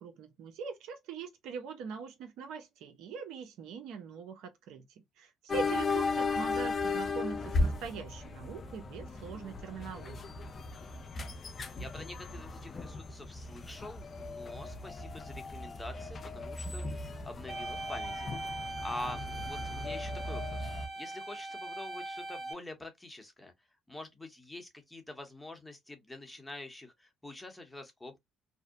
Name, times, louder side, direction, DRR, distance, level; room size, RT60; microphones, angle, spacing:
voice 1, 0.0-4.9 5.2-10.3, right 6 dB, 75° right, 0.6 m, -42 dB
sound 1, 5.5-20.9, left 3 dB, 45° left, 0.5 m, -36 dB
voice 2, 11.7-20.7 21.0-23.5 23.9-28.2, left 1 dB, 10° left, 0.9 m, -46 dB
sound 2, 17.5-22.5, right 2 dB, 35° right, 1.0 m, -41 dB
2.7 x 2.0 x 2.4 m
supercardioid pair, 65°, 0 cm